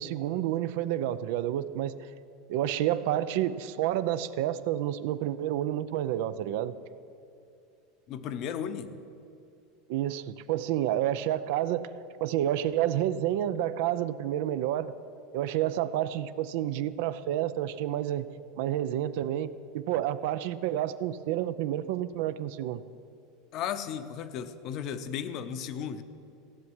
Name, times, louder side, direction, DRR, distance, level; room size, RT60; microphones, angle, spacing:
voice 1, 0.0-2.1 2.5-6.7 9.9-11.9 12.2-14.9 15.3-18.2 18.6-22.8, right 12 dB, 65° right, 14 dB, 0.6 m, -29 dB
voice 2, 8.1-9.0 23.5-26.0, left 8 dB, 40° left, 11 dB, 0.8 m, -35 dB
15.5 x 7.3 x 9.6 m, 2.6 s
supercardioid pair, 155°, 0 cm